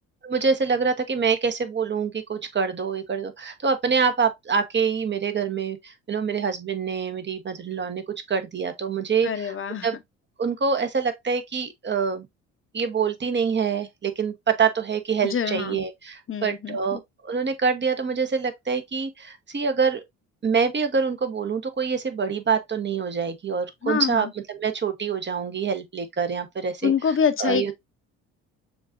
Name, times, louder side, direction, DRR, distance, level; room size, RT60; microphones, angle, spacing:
voice 1, 0.2-9.6 9.8-10.0 10.4-12.3 12.7-20.0 20.4-27.7, right 5 dB, 30° right, 1.0 m, -26 dB
voice 2, 9.2-9.9 15.2-15.8 16.3-17.0 23.8-24.3 26.8-27.7, left 7 dB, 35° left, 0.9 m, -25 dB
7.0 x 2.5 x 2.5 m
hypercardioid pair, 55°, 38 cm